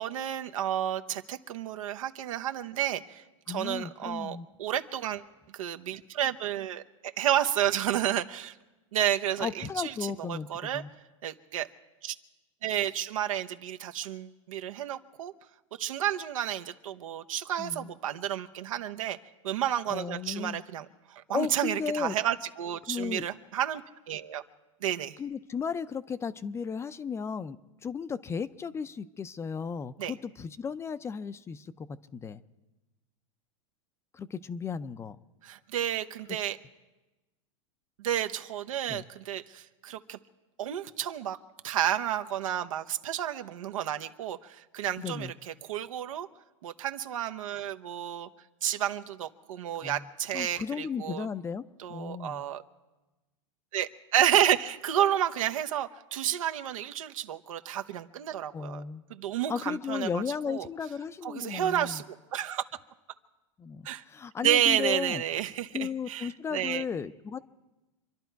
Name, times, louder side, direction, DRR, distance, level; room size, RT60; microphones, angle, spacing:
voice 1, 0.0-5.2 5.5-8.5 8.9-10.8 11.2-11.7 12.0-12.1 12.6-15.3 15.8-19.2 19.4-24.4 24.8-25.2 30.0-30.1 35.4-36.6 38.0-40.2 40.6-41.4 41.6-46.3 46.6-48.3 48.6-51.3 51.8-52.6 53.7-58.8 59.1-60.7 61.2-62.0 62.3-62.6 63.8-64.0 64.4-66.8, right 11 dB, 85° right, 8 dB, 1.0 m, -31 dB
voice 2, 3.5-4.5 9.4-10.9 17.6-17.9 19.9-20.6 21.3-22.1 22.9-23.2 25.2-31.9 32.1-32.4 34.1-35.2 38.9-39.0 45.0-45.3 49.8-50.1 50.3-51.6 51.9-52.4 58.5-59.0 59.5-62.0 63.6-65.2 65.7-67.4, left 6 dB, 15° left, 13 dB, 0.5 m, -35 dB
27.0 x 11.0 x 4.6 m, 1.1 s
supercardioid pair, 130°, 17 cm